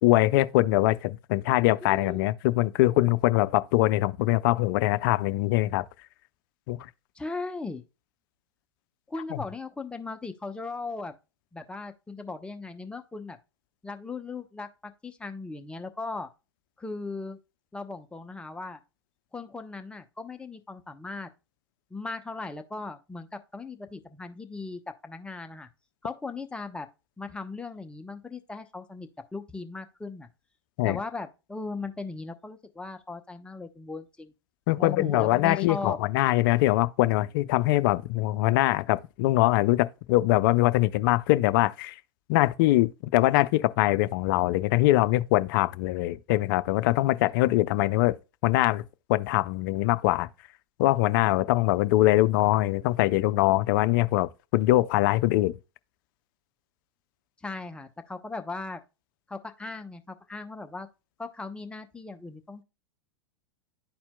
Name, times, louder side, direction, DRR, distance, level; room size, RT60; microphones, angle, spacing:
voice 1, 0.0-5.8 6.7-6.8 9.3-9.4 30.8-31.0 34.7-41.9 42.3-48.2 48.4-48.8 49.1-50.3 50.8-55.5, left 17 dB, 50° left, 0.5 m, -23 dB
voice 2, 1.8-2.2 7.2-7.8 9.1-11.2 11.5-13.4 13.8-16.3 16.8-17.4 17.7-18.8 19.3-21.3 21.9-25.7 26.0-26.9 27.2-30.3 30.8-34.3 34.8-36.0 57.4-58.8 59.3-60.9 61.2-62.6, left 3 dB, 5° left, 0.7 m, -38 dB
12.0 x 4.3 x 2.2 m
figure-of-eight pair, 95°, 14 cm